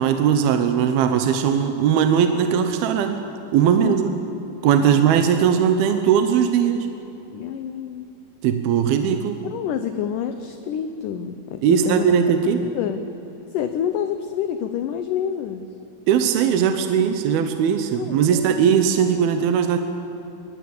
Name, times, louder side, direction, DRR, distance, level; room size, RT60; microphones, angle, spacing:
voice 1, 0.0-3.2 3.5-4.1 4.6-6.9 8.4-9.4 11.6-12.6 16.1-19.8, right 8 dB, 75° right, 7 dB, 2.8 m, -19 dB
voice 2, 4.8-5.1 7.3-8.1 9.5-12.1 12.6-13.1 13.5-15.7 17.9-18.6, left 9 dB, 75° left, 8 dB, 2.1 m, -28 dB
22.0 x 21.5 x 8.6 m, 2.9 s
omnidirectional pair, 4.6 m